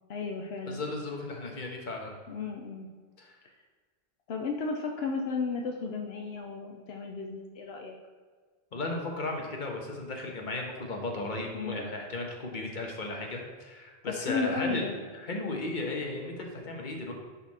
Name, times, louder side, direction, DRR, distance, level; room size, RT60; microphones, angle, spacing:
voice 1, 0.1-0.8 2.3-2.9 4.3-7.9 11.5-11.9 14.0-14.9, left 4 dB, 80° left, 2 dB, 1.0 m, -34 dB
voice 2, 0.7-2.2 3.2-3.4 8.7-14.9 15.2-17.1, left 2 dB, 50° left, 1 dB, 1.4 m, -35 dB
10.5 x 4.3 x 4.2 m, 1.5 s
omnidirectional pair, 1.1 m